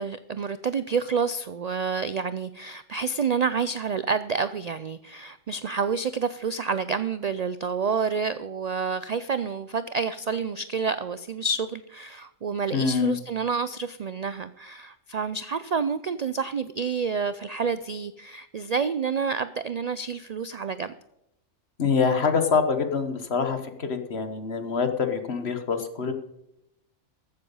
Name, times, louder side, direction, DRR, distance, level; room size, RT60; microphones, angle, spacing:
voice 1, 0.0-20.9, right 5 dB, 75° right, 13 dB, 0.3 m, -29 dB
voice 2, 12.7-13.2 21.8-26.1, left 5 dB, 55° left, 7 dB, 1.5 m, -25 dB
14.0 x 7.7 x 5.5 m, 0.83 s
omnidirectional pair, 1.3 m